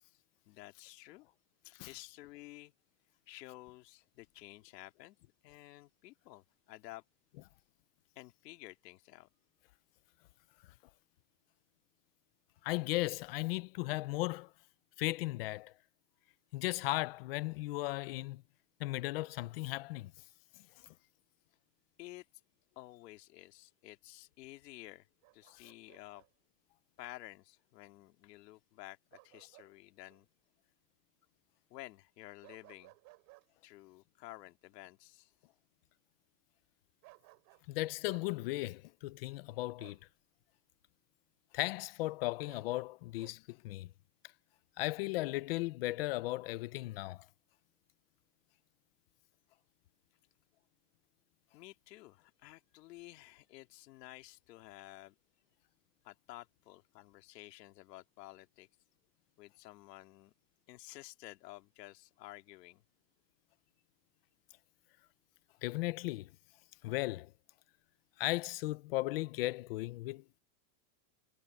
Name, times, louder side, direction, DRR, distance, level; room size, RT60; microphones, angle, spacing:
voice 1, 0.0-1.3 1.6-2.7 3.3-5.2 5.4-7.0 8.2-9.3 22.0-22.3 22.8-25.1 25.3-26.2 27.0-30.3 31.7-32.9 33.6-35.3 51.5-55.2 56.0-58.7 59.4-60.3 60.7-62.8, left 18 dB, 70° left, 2.5 m, -52 dB
voice 2, 12.6-14.5 15.0-15.7 16.5-18.4 18.8-20.1 37.7-40.0 41.5-43.9 44.8-47.2 65.6-66.3 66.8-67.3 68.2-70.2, left 19 dB, 40° left, 0.4 m, -36 dB
Bark, 25.2-26.3 29.1-29.7 30.1-30.2 32.4-33.5 37.0-37.7 38.0-38.3 39.8-40.1 42.5-43.4, right 26 dB, 40° right, 2.6 m, -60 dB
supercardioid pair, 170°, 50 cm